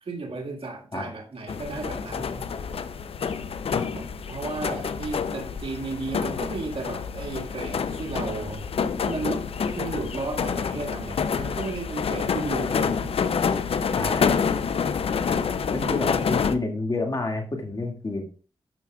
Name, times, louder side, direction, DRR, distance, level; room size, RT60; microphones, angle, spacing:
voice 1, 0.0-2.5 3.9-8.7 9.0-9.5 9.7-13.1 15.7-16.4, right 3 dB, 75° right, 1 dB, 1.8 m, -34 dB
sound 1, 1.5-16.6, left 6 dB, 80° left, 0.6 m, -27 dB
voice 2, 13.9-14.4 15.7-18.2, left 2 dB, 40° left, 2 dB, 2.0 m, -29 dB
12.5 x 6.1 x 2.3 m, 0.37 s
wide cardioid pair, 80°, 10 cm